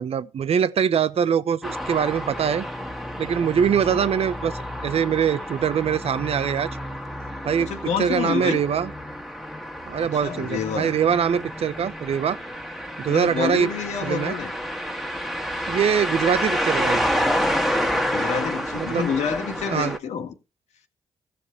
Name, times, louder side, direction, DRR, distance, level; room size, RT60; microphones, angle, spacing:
voice 1, 0.0-2.7 3.2-6.7 7.4-7.7 8.0-8.9 9.9-12.4 13.0-13.7 14.0-14.3 15.7-17.0 18.7-19.0 19.7-20.0, right 7 dB, 60° right, 0.9 m, -23 dB
sound 1, 1.6-20.0, equal, ahead, 1.9 m, -29 dB
voice 2, 7.6-8.6 9.9-10.9 13.1-14.5 17.8-20.3, left 7 dB, 70° left, 1.8 m, -28 dB
15.5 x 5.4 x 4.7 m
supercardioid pair, 50°, 12 cm